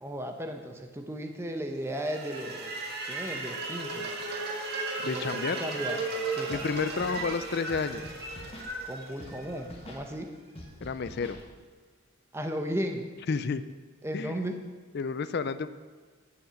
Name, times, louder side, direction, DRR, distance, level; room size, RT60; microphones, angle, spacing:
voice 1, 0.0-2.8 3.0-4.1 5.0-5.3 5.6-6.0 6.3-6.6 8.8-10.3 12.3-13.1 14.0-14.6, equal, 10° right, 5 dB, 0.8 m, -35 dB
sound 1, 1.9-10.0, right 3 dB, 45° right, 1.6 m, -35 dB
voice 2, 5.0-5.6 6.5-8.1 10.8-11.4 13.3-13.6 14.1-14.5 14.9-15.7, left 5 dB, 50° left, 13 dB, 0.4 m, -31 dB
Scratching (performance technique), 6.5-6.7 6.9-7.3 7.7-8.7 9.2-9.4 9.6-10.0 10.6-11.4, left 1 dB, 25° left, 1.5 m, -45 dB
11.0 x 7.2 x 6.4 m, 1.5 s
head